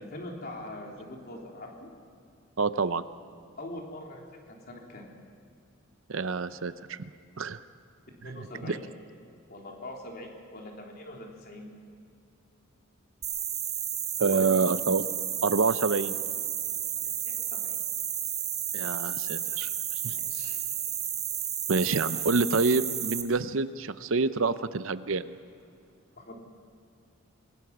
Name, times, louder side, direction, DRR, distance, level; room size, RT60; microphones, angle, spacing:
voice 1, 0.0-1.9 3.6-5.0 8.2-8.8 9.5-11.7 14.2-14.6 17.2-17.8 20.1-20.6 26.2-26.3, left 1 dB, 45° left, -1 dB, 3.7 m, -42 dB
voice 2, 2.6-3.0 6.1-7.0 7.4-7.6 8.2-8.4 8.7-8.8 14.2-15.0 15.4-16.1 18.7-19.7 20.0-20.2 21.7-25.3, right 4 dB, 65° right, 13 dB, 0.7 m, -27 dB
sound 1, 13.2-23.2, right 10 dB, 30° right, 1.5 m, -32 dB
26.0 x 20.0 x 6.0 m, 2.4 s
head